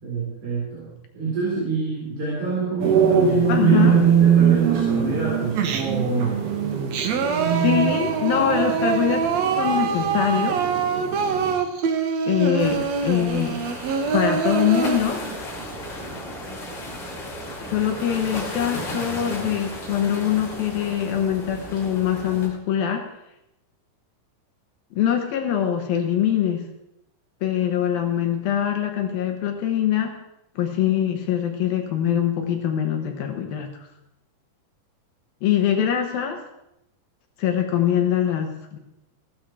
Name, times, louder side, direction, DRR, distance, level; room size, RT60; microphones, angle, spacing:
voice 1, 0.0-6.4, right 4 dB, 35° right, -6 dB, 4.1 m, -27 dB
sound 1, 2.8-11.6, right 7 dB, 70° right, 3.8 m, -22 dB
voice 2, 3.5-4.0 7.4-10.6 12.3-13.6 14.1-15.2 17.6-23.1 24.9-26.6 27.4-30.2 30.6-33.7 35.4-36.4 37.4-38.8, left 9 dB, 70° left, 4 dB, 2.5 m, -23 dB
Singing, 5.5-6.1 6.6-15.0, right 6 dB, 85° right, 1.5 m, -25 dB
sound 2, 12.6-22.5, equal, 30° left, 3.2 m, -34 dB
16.0 x 12.5 x 4.6 m, 0.87 s
omnidirectional pair, 5.1 m